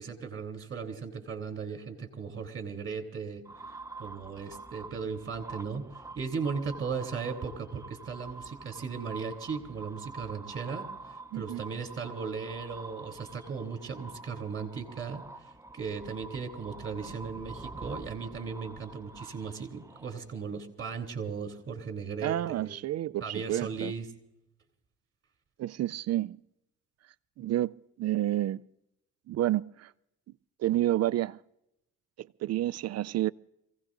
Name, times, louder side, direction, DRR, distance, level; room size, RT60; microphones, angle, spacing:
voice 1, 0.0-3.4 4.0-5.8 6.2-10.9 11.3-22.7 23.2-24.1, right 5 dB, 45° right, 3.4 m, -37 dB
sound 1, 3.5-20.5, right 3 dB, 10° right, 0.6 m, -46 dB
voice 2, 11.3-11.6 22.2-23.9 25.6-26.4 27.4-28.6 29.3-29.9 30.6-31.4 32.2-33.3, right 14 dB, 60° right, 0.4 m, -30 dB
27.0 x 17.0 x 2.6 m
cardioid pair, 90°, 30 cm